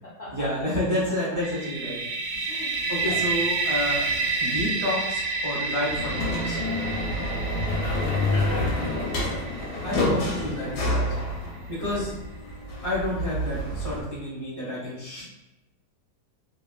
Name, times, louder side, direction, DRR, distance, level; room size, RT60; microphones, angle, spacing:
voice 1, 0.3-2.0 2.3-2.5 2.9-4.0 4.4-6.6 9.8-11.0 11.7-12.1 12.8-15.2, left 1 dB, 40° right, -8 dB, 0.5 m, -29 dB
sound 1, 1.4-11.1, right 3 dB, 80° right, 1.2 m, -30 dB
voice 2, 2.5-3.2 3.9-4.2 8.4-9.3 11.4-11.6 13.5-13.7 15.2-15.3, left 2 dB, 55° left, -7 dB, 0.7 m, -40 dB
sound 2, 2.7-4.8 5.8-14.0, left 1 dB, 85° left, 1.3 m, -29 dB
2.9 x 2.6 x 2.2 m, 1.0 s
omnidirectional pair, 1.7 m